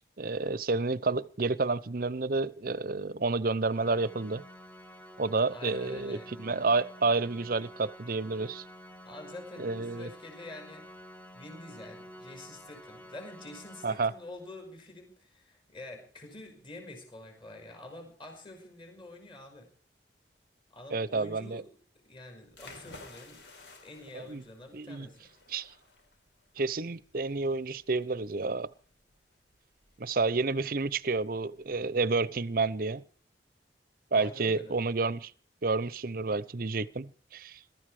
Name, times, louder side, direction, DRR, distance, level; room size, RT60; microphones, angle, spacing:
voice 1, 0.2-4.4 5.2-8.6 9.6-10.1 13.8-14.1 20.9-21.6 24.1-24.4 24.7-25.1 25.5-25.7 26.6-28.7 30.0-33.0 34.1-35.3 35.6-37.6, right 3 dB, 55° right, 0.7 m, -30 dB
Organ, 3.7-14.5, equal, 10° left, 1.0 m, -50 dB
voice 2, 5.5-6.4 9.1-10.9 11.3-19.7 20.7-21.7 22.0-23.4 23.8-25.3 34.1-34.8, left 2 dB, 30° left, 5.5 m, -47 dB
sound 1, 22.5-31.8, left 3 dB, 75° left, 4.3 m, -55 dB
22.0 x 13.5 x 4.9 m
head